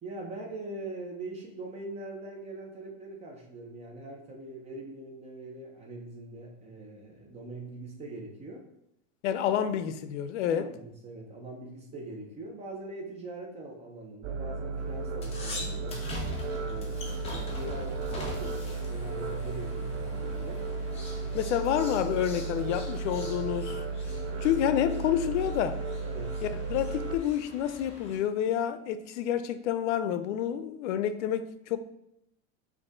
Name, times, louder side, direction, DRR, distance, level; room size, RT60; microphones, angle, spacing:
voice 1, 0.0-8.6 10.4-16.0 16.6-20.6 26.0-26.4, right 2 dB, 20° right, 0.7 m, -42 dB
voice 2, 9.2-10.7 21.3-23.8 24.4-25.8 26.4-31.8, left 10 dB, 90° left, 0.5 m, -29 dB
sound 1, 14.2-27.2, right 3 dB, 60° right, 0.5 m, -34 dB
sound 2, 14.8-28.2, left 2 dB, 15° left, 0.7 m, -44 dB
5.2 x 2.5 x 3.6 m
supercardioid pair, 150°, 35 cm